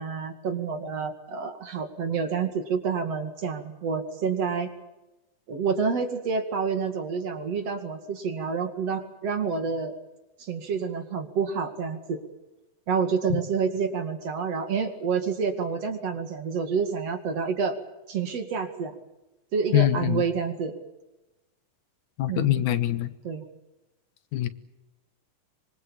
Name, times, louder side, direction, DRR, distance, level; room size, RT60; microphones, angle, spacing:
voice 1, 0.0-4.7 5.5-9.9 10.4-12.2 12.9-17.8 18.1-18.9 19.5-20.7 22.3-22.7 23.2-23.4, right 5 dB, 55° right, 7 dB, 3.1 m, -28 dB
voice 2, 19.7-20.2 22.2-23.1 24.3-24.5, left 14 dB, 75° left, 12 dB, 2.6 m, -23 dB
25.5 x 23.0 x 7.2 m, 1.0 s
omnidirectional pair, 3.5 m